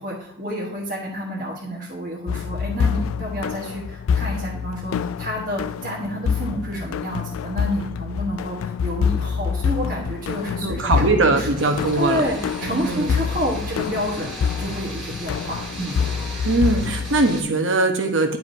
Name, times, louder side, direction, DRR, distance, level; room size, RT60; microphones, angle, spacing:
voice 1, 0.0-10.9 11.3-11.5 11.9-16.0, equal, 40° right, -4 dB, 1.2 m, -29 dB
sound 1, 2.3-17.3, left 6 dB, 75° left, 0.3 m, -26 dB
voice 2, 10.6-12.2 12.6-13.1 16.4-18.4, right 2 dB, 65° right, 5 dB, 1.0 m, -21 dB
sound 2, 11.5-17.4, right 1 dB, 5° right, 1.6 m, -37 dB
10.5 x 4.7 x 2.7 m, 0.77 s
head